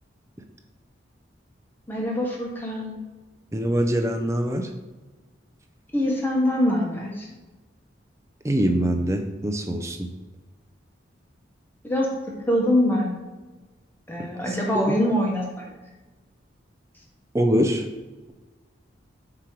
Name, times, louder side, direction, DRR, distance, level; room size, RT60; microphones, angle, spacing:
voice 1, 1.9-3.0 5.9-7.3 11.8-12.1 12.5-13.1 14.1-15.6, left 1 dB, 10° left, -2 dB, 1.1 m, -24 dB
voice 2, 3.5-4.7 8.4-10.1 14.5-14.8 17.3-17.9, equal, 15° right, 3 dB, 0.5 m, -24 dB
7.6 x 3.0 x 4.6 m, 1.2 s
head